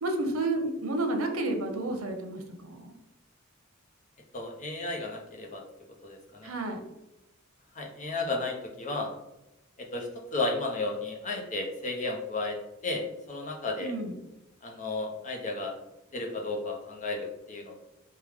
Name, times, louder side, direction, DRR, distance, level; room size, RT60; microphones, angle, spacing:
voice 1, 0.0-2.9 6.4-6.8 13.8-14.2, right 2 dB, 85° right, 5 dB, 0.7 m, -31 dB
voice 2, 4.3-5.6 6.0-6.5 7.8-9.1 9.8-12.6 12.8-13.9 14.6-15.7 16.1-17.8, left 2 dB, 35° left, 1 dB, 0.6 m, -33 dB
4.8 x 2.2 x 3.4 m, 0.93 s
head